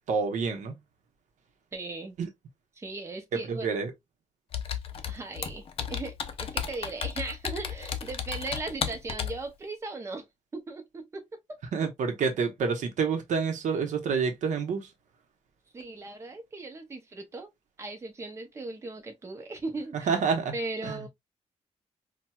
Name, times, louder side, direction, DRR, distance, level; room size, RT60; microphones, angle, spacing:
voice 1, 0.1-0.7 2.2-2.3 3.5-3.9 11.7-14.9 20.1-20.5 20.8-20.9, right 5 dB, 85° right, 0.8 m, -28 dB
voice 2, 1.7-2.2 2.7-3.8 5.1-10.3 10.5-11.6 15.7-17.5 17.8-20.1 20.5-21.1, right 3 dB, 20° right, 0.6 m, -38 dB
Computer keyboard, 4.5-9.4, left 8 dB, 50° left, 0.5 m, -34 dB
4.3 x 2.2 x 2.2 m
wide cardioid pair, 175°, 12 cm